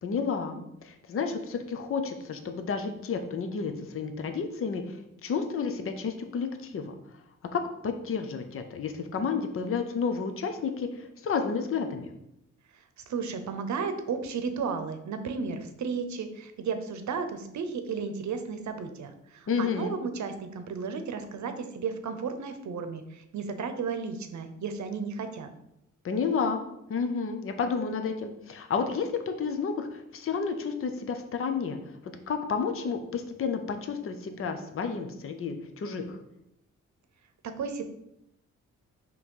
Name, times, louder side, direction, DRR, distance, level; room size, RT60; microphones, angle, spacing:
voice 1, 0.0-6.9 7.5-12.1 19.5-19.9 26.0-26.6 26.9-31.8 32.0-36.2, left 5 dB, 45° left, 6 dB, 0.7 m, -31 dB
voice 2, 13.0-25.5 37.4-37.8, right 5 dB, 65° right, 8 dB, 0.8 m, -34 dB
6.0 x 3.1 x 5.4 m, 0.82 s
wide cardioid pair, 150°, 30 cm